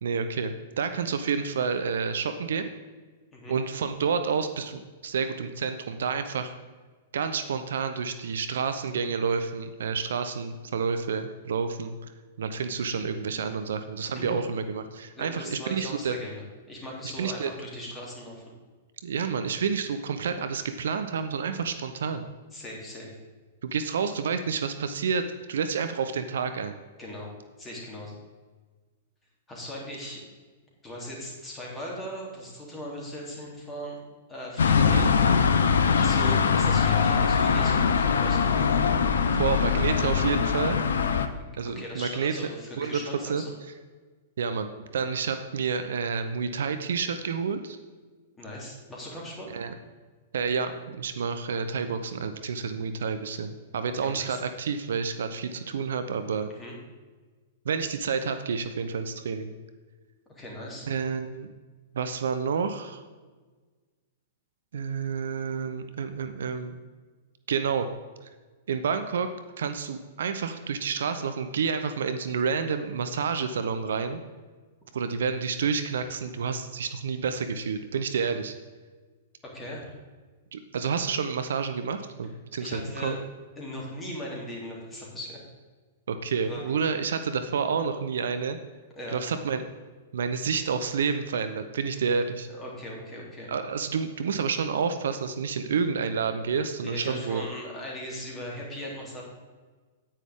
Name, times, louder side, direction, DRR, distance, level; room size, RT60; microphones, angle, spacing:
voice 1, 0.0-2.7 3.5-6.5 7.1-11.9 12.4-16.2 17.2-17.5 19.0-22.3 23.6-26.8 34.8-35.1 39.4-40.8 41.6-42.3 42.8-43.4 44.4-47.8 49.5-49.7 50.3-56.5 57.7-59.5 60.9-61.5 61.9-63.0 64.7-66.7 67.5-67.9 68.2-68.3 68.7-69.3 69.6-74.2 74.9-78.6 80.5-83.2 86.1-88.6 89.1-89.6 90.1-92.5 93.5-97.5, right 6 dB, 60° right, 9 dB, 0.6 m, -29 dB
voice 2, 15.2-18.4 22.5-23.2 27.0-27.3 27.6-28.2 29.5-30.2 30.8-34.0 34.3-34.8 35.9-38.6 41.4-43.5 45.2-45.3 48.3-49.5 54.0-54.4 56.6-56.7 60.3-60.9 79.4-79.9 82.6-83.2 83.6-85.4 86.5-86.8 89.0-89.2 92.5-93.5 96.5-99.2, equal, 15° left, -3 dB, 3.0 m, -39 dB
sound 1, 34.6-41.3, left 6 dB, 65° left, 0.6 m, -22 dB
9.8 x 9.2 x 3.6 m, 1.4 s
figure-of-eight pair, 105°, 0 cm